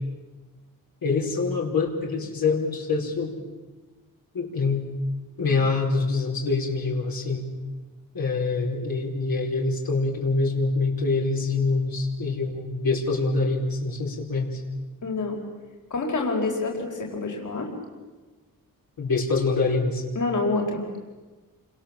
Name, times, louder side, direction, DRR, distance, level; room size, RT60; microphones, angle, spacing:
voice 1, 1.0-3.3 4.3-4.9 5.4-7.4 8.1-14.6 19.0-20.0, left 3 dB, 75° left, -2 dB, 4.8 m, -25 dB
voice 2, 15.0-15.4 15.9-17.7 20.1-20.8, left 3 dB, 55° left, 1 dB, 4.5 m, -27 dB
29.0 x 26.0 x 7.4 m, 1.3 s
wide cardioid pair, 130°, 35 cm